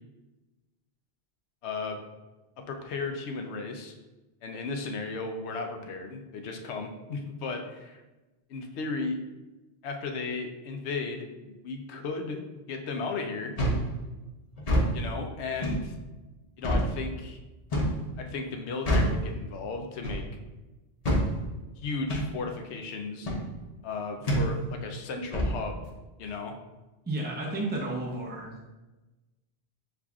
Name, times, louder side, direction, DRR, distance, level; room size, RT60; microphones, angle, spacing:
voice 1, 1.6-2.0 2.6-3.9 4.4-8.0 8.5-9.2 9.8-13.5 14.9-15.9 16.6-17.4 18.2-20.2 21.8-23.3 23.8-25.9 26.2-26.6, left 4 dB, 90° left, 4 dB, 0.9 m, -35 dB
sound 1, 13.6-13.9 14.6-14.9 15.6-15.8 16.6-16.9 17.7-18.0 18.9-19.2 20.0-20.3 21.0-21.3 22.1-22.3 23.3-23.4 24.3-24.5 25.3-25.6, equal, 40° left, 0.7 m, -25 dB
voice 2, 27.0-28.5, right 2 dB, 10° right, -3 dB, 0.6 m, -32 dB
6.8 x 2.5 x 2.3 m, 1.1 s
omnidirectional pair, 1.1 m